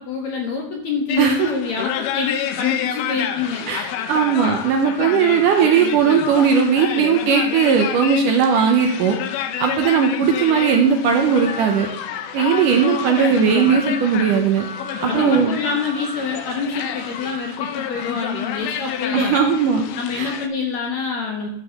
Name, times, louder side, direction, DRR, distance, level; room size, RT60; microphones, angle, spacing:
voice 1, 0.0-3.6 15.0-19.4 19.9-21.5, left 5 dB, 65° left, 1 dB, 1.9 m, -26 dB
sound 1, 1.1-20.5, left 10 dB, 85° left, 2.6 m, -29 dB
voice 2, 1.2-1.5 3.7-9.2 9.6-11.9 12.3-14.7 15.0-15.6 19.1-19.8 20.2-20.3, right 6 dB, 75° right, 4 dB, 2.0 m, -18 dB
sound 2, 1.6-7.0 10.2-10.8 11.3-11.9 12.4-12.9 13.5-14.0 14.6-15.1 15.6-16.2 16.7-18.6, left 2 dB, 10° left, 1.8 m, -38 dB
12.0 x 4.8 x 5.7 m, 0.74 s
omnidirectional pair, 4.4 m